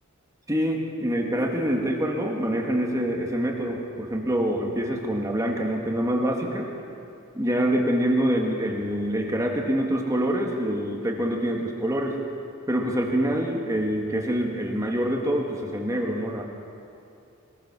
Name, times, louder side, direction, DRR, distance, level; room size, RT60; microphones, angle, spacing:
voice 1, 0.5-6.7 7.3-12.2 12.7-16.4, equal, 15° right, 0 dB, 1.9 m, -25 dB
21.0 x 20.0 x 6.1 m, 2.6 s
head